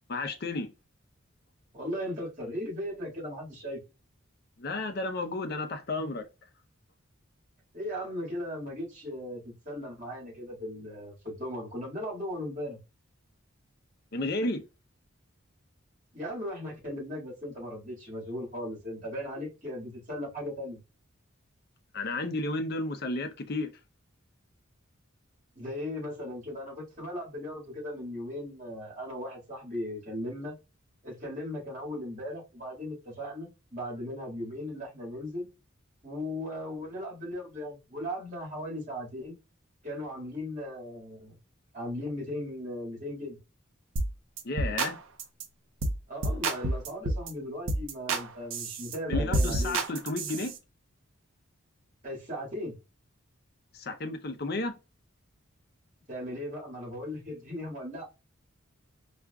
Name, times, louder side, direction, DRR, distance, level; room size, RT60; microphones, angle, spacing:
voice 1, 0.1-0.7 4.6-6.2 14.1-14.6 21.9-23.7 44.4-45.0 49.1-50.5 53.7-54.8, left 2 dB, 45° left, 0.5 m, -32 dB
voice 2, 1.7-3.8 7.7-12.8 16.1-20.8 25.6-30.6 31.0-35.5 36.0-39.4 39.8-41.3 41.7-43.4 46.1-49.8 52.0-52.8 56.1-58.0, left 1 dB, 35° right, 1.9 m, -37 dB
sound 1, 44.0-44.1 44.4-44.9 45.2-45.4 45.8-46.0 46.2-47.3 47.7-48.2 48.5-50.5, right 2 dB, 70° right, 0.6 m, -29 dB
4.7 x 2.4 x 2.3 m
head